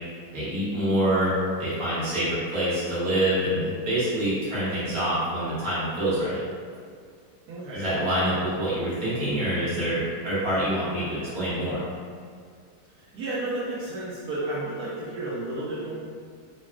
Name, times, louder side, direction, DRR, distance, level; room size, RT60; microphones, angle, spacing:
voice 1, 0.3-6.4 7.7-11.8, right 1 dB, 65° right, -11 dB, 1.6 m, -26 dB
voice 2, 7.5-7.9 13.0-16.0, right 2 dB, 85° right, -10 dB, 1.2 m, -32 dB
3.7 x 2.1 x 2.3 m, 2.1 s
omnidirectional pair, 1.7 m